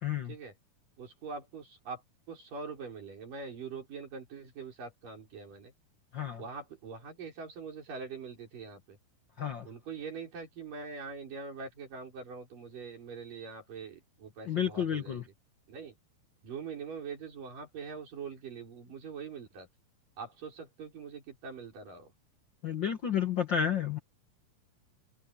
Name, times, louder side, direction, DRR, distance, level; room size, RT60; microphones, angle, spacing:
voice 1, 0.0-0.4 6.1-6.4 9.4-9.7 14.4-15.3 22.6-24.0, left 8 dB, 75° left, 1.0 m, -31 dB
voice 2, 1.0-2.0 2.3-5.7 6.4-9.0 9.6-15.2 15.7-15.9 16.4-19.7 20.2-22.1, right 5 dB, 65° right, 6.8 m, -43 dB
omnidirectional pair, 4.2 m